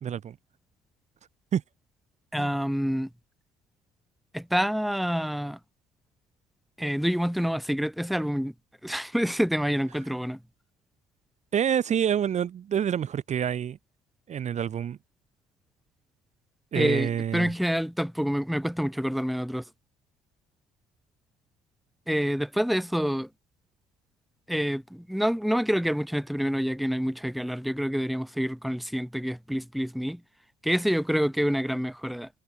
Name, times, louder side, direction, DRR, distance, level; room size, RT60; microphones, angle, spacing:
voice 1, 0.0-0.3 1.5-1.6 2.4-2.5 11.5-13.8 14.3-15.0 16.7-17.5, right 9 dB, 45° right, 1.0 m, -27 dB
voice 2, 2.3-3.1 4.3-5.6 6.8-8.5 8.8-10.4 16.7-19.6 22.1-23.3 24.5-30.2 30.6-32.3, equal, ahead, 1.3 m, -27 dB
cardioid pair, 110°, 17 cm